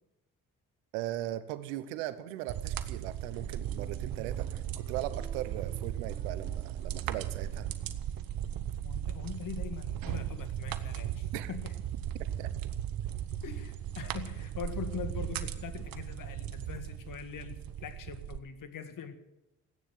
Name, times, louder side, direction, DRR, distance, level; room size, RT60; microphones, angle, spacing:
voice 1, 0.9-7.7 11.3-11.5 12.4-12.5, right 14 dB, 90° right, 15 dB, 0.9 m, -38 dB
sound 1, 2.5-18.4, right 10 dB, 70° right, 1.1 m, -37 dB
sound 2, 3.8-8.4, right 4 dB, 25° right, 5.9 m, -56 dB
voice 2, 8.8-11.7 13.4-19.2, left 7 dB, 60° left, 10 dB, 1.9 m, -42 dB
15.5 x 9.7 x 9.3 m, 0.96 s
hypercardioid pair, 55°, 37 cm